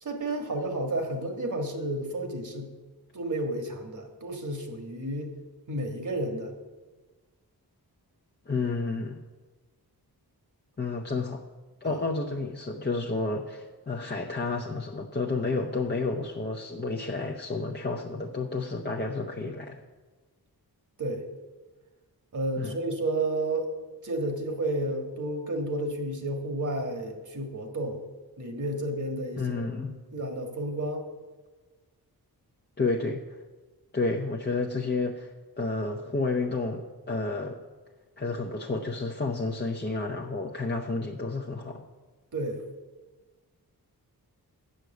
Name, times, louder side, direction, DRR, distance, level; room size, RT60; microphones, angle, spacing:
voice 1, 0.0-2.7 3.1-5.3 5.7-6.5 11.8-12.0 21.0-21.2 22.3-23.7 24.0-28.0 28.4-31.0 42.3-42.6, right 1 dB, 50° right, 5 dB, 1.6 m, -31 dB
voice 2, 8.5-9.2 10.8-11.5 11.8-19.8 22.6-22.8 29.4-29.9 32.8-33.4 33.9-37.6 38.2-41.8, left 3 dB, 25° left, -1 dB, 0.7 m, -31 dB
8.1 x 6.6 x 7.9 m, 1.3 s
wide cardioid pair, 85°, 38 cm